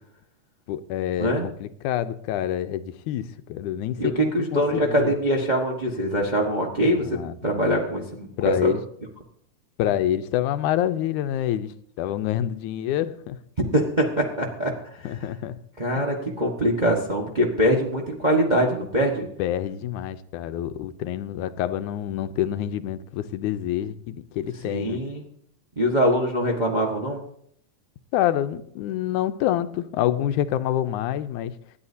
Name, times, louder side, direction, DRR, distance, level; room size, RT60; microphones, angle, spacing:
voice 1, 0.7-5.1 7.0-7.4 8.4-8.8 9.8-13.4 15.0-15.6 19.4-25.0 28.1-31.5, left 11 dB, 90° left, 11 dB, 2.1 m, -27 dB
voice 2, 4.0-8.7 13.7-14.7 15.8-19.3 24.6-25.2 25.8-27.2, equal, 40° right, -1 dB, 0.6 m, -23 dB
26.0 x 10.5 x 2.8 m, 0.67 s
omnidirectional pair, 3.5 m